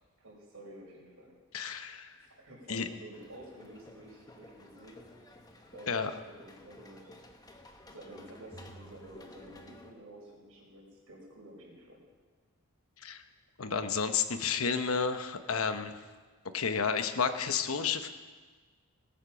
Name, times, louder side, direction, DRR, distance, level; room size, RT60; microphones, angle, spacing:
voice 1, 0.2-1.4 2.1-5.1 5.7-7.4 7.9-12.0, right 1 dB, 70° right, -3 dB, 5.2 m, -51 dB
voice 2, 1.5-2.1 2.7-2.9 5.9-6.1 13.0-13.2 13.6-15.9 16.5-18.1, left 6 dB, 70° left, 9 dB, 1.0 m, -31 dB
sound 1, 3.1-9.9, left 1 dB, 15° left, 1.0 m, -53 dB
19.5 x 9.0 x 5.8 m, 1.4 s
head